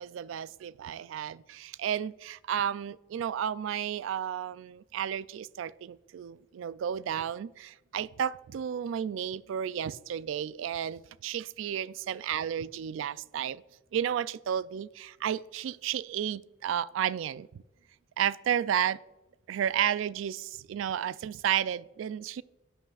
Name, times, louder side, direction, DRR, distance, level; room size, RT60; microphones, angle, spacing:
voice 1, 0.0-13.6 13.9-17.6 18.2-19.0 19.5-22.4, right 9 dB, 85° right, 0.3 m, -32 dB
13.0 x 9.1 x 2.4 m
head